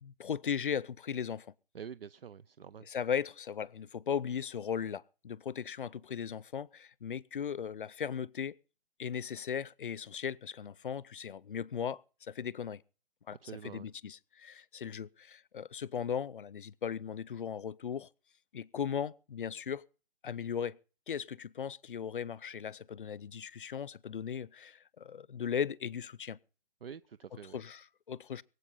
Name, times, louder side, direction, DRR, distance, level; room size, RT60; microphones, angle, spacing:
voice 1, 0.0-1.5 2.8-8.6 9.0-12.8 13.3-13.4 13.6-18.1 18.5-19.8 20.2-20.8 21.1-26.4 27.5-28.4, left 7 dB, 55° left, 0.7 m, -37 dB
voice 2, 1.7-2.9 13.4-13.9 26.8-27.6, right 8 dB, 65° right, 0.7 m, -46 dB
23.5 x 8.2 x 5.6 m
hypercardioid pair, 170°, 31 cm